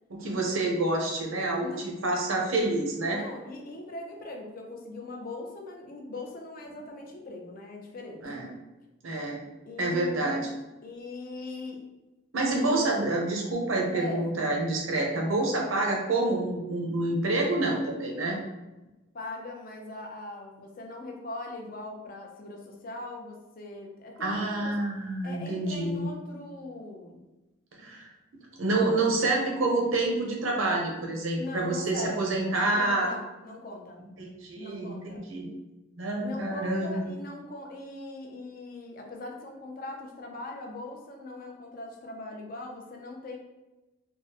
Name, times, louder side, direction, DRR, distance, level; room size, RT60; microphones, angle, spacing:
voice 1, 0.1-3.2 8.2-8.5 9.0-9.4 9.8-10.5 12.3-18.4 24.2-26.1 27.8-28.1 28.6-33.1 34.2-35.0 35.3-35.5 36.0-37.1, right 2 dB, 80° right, 0 dB, 0.7 m, -28 dB
voice 2, 3.1-8.4 9.6-10.5 10.8-11.8 13.9-14.3 19.1-24.7 25.2-27.3 31.4-32.4 32.7-34.0 34.6-35.2 36.2-43.4, left 2 dB, 45° left, 1 dB, 0.4 m, -40 dB
3.5 x 2.0 x 2.8 m, 1.1 s
head